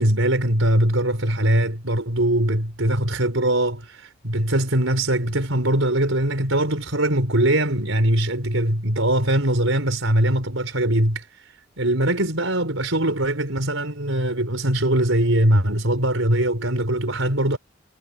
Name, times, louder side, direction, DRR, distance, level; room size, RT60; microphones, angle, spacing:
voice 1, 0.0-17.6, right 1 dB, 70° right, 5.2 m, -21 dB
head